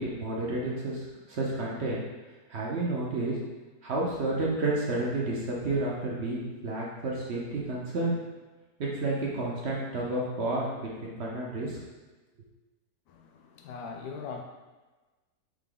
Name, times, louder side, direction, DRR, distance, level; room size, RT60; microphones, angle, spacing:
voice 1, 0.0-2.1 2.5-3.4 3.8-8.2 8.8-11.8, right 2 dB, 55° right, -4 dB, 0.8 m, -31 dB
voice 2, 13.1-14.4, left 5 dB, 75° left, 4 dB, 1.0 m, -40 dB
3.7 x 3.2 x 3.8 m, 1.2 s
omnidirectional pair, 1.7 m